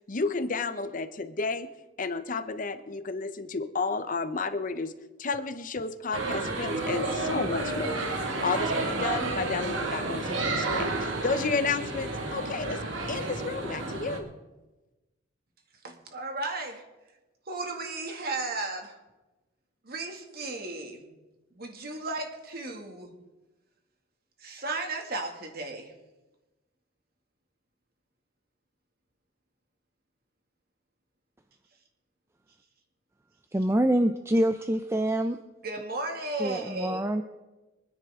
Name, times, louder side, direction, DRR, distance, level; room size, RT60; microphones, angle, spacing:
voice 1, 0.1-1.7 2.0-4.9 5.2-8.1 8.4-12.8 13.1-14.3, left 4 dB, 45° left, 11 dB, 0.8 m, -31 dB
sound 1, 6.1-14.2, right 2 dB, 85° right, 2.2 m, -31 dB
voice 2, 15.8-16.8 17.5-19.0 19.8-21.0 21.5-23.1 24.4-25.9 35.6-37.1, right 2 dB, 55° right, 3 dB, 2.2 m, -35 dB
voice 3, 33.5-35.4 36.4-37.2, right 1 dB, 15° right, 8 dB, 0.5 m, -25 dB
25.0 x 10.0 x 3.7 m, 1.1 s
head